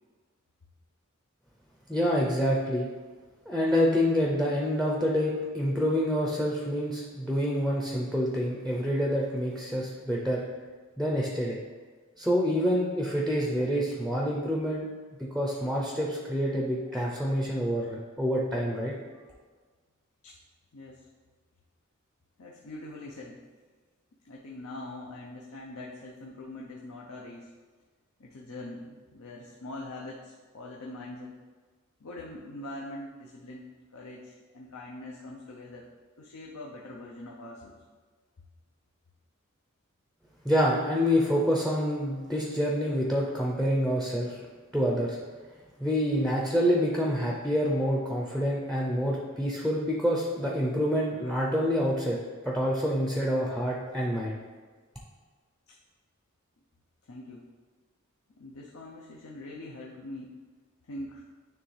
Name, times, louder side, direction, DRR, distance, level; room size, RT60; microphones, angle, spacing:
voice 1, 1.9-2.9 3.5-10.4 11.0-11.6 12.2-14.9 15.2-18.9 40.4-44.4 44.7-45.2 45.8-52.2 52.4-54.4, equal, ahead, -2 dB, 0.5 m, -27 dB
voice 2, 20.7-21.1 22.4-23.4 24.2-27.5 28.2-31.3 32.0-35.9 36.2-37.7 55.7-55.8 57.1-57.4 58.4-60.4 60.9-61.2, left 2 dB, 70° left, -2 dB, 0.7 m, -43 dB
9.4 x 3.3 x 3.3 m, 1.5 s
head